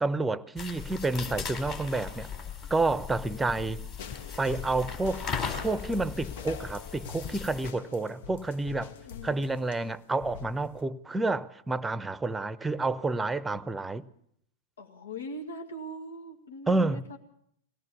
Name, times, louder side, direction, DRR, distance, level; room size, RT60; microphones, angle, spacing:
voice 1, 0.0-2.3 2.7-3.9 4.4-5.2 5.6-8.9 9.2-14.1 16.7-17.2, right 3 dB, 10° right, 0.8 m, -29 dB
sound 1, 0.6-7.7, left 6 dB, 40° left, 4.3 m, -38 dB
voice 2, 3.2-3.6 9.0-9.5 14.8-17.2, equal, 80° left, 2.0 m, -41 dB
sound 2, 4.0-10.8, left 8 dB, 60° left, 0.9 m, -46 dB
21.5 x 17.5 x 6.9 m
figure-of-eight pair, 100°, 0 cm